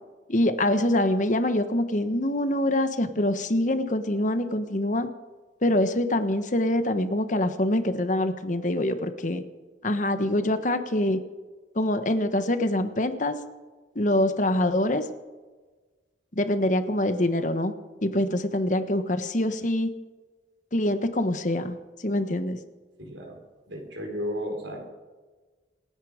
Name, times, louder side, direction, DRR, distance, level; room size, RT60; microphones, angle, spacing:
voice 1, 0.3-5.1 5.6-9.4 9.8-11.2 11.7-13.4 13.9-15.0 16.3-17.7 18.0-19.9 20.7-22.6, left 1 dB, 45° left, 9 dB, 1.2 m, -25 dB
voice 2, 23.0-23.4 23.7-24.9, equal, 90° right, 2 dB, 4.3 m, -33 dB
27.0 x 9.8 x 5.1 m, 1.3 s
head